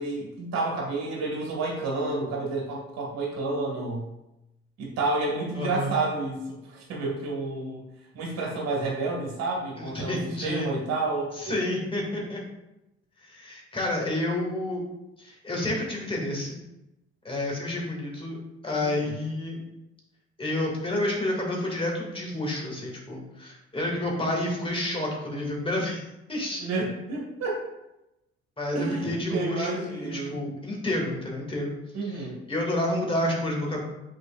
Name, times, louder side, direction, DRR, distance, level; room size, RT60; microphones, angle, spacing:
voice 1, 0.0-4.1 4.8-7.8 8.1-11.6 18.8-19.2 26.6-27.6 28.7-30.4 31.9-32.4, right 2 dB, 55° right, -2 dB, 2.4 m, -30 dB
voice 2, 5.5-5.9 9.8-10.7 11.3-12.4 13.2-14.8 15.2-16.6 17.2-18.4 18.6-19.6 20.4-26.0 26.3-26.6 28.6-31.7 32.0-33.8, left 1 dB, 15° left, -2 dB, 2.4 m, -29 dB
9.6 x 4.6 x 2.6 m, 0.91 s
figure-of-eight pair, 50°, 32 cm